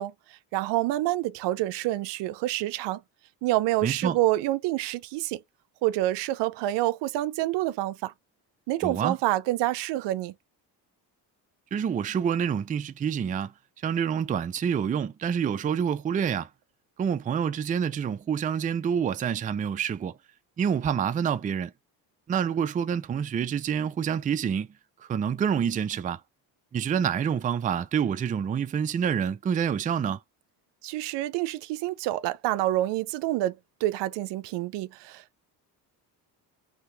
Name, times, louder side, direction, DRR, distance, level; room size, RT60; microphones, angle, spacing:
voice 1, 0.0-3.0 3.4-5.4 5.8-8.1 8.7-10.3 30.8-35.4, right 16 dB, 85° right, 0.5 m, -28 dB
voice 2, 3.8-4.2 8.8-9.2 11.7-13.5 13.8-16.5 17.0-20.1 20.6-21.7 22.3-24.7 25.0-26.2 26.7-30.2, right 7 dB, 20° right, 0.3 m, -27 dB
2.8 x 2.8 x 3.2 m
cardioid pair, 90°, 41 cm